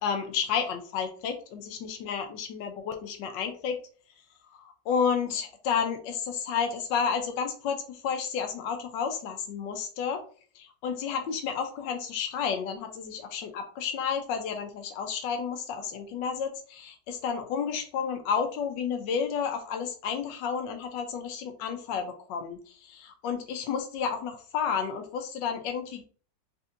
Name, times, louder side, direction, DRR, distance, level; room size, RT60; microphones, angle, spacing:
voice 1, 0.0-3.8 4.5-10.2 10.5-26.0, left 6 dB, 90° left, 5 dB, 1.3 m, -31 dB
4.2 x 3.4 x 2.5 m, 0.41 s
omnidirectional pair, 1.9 m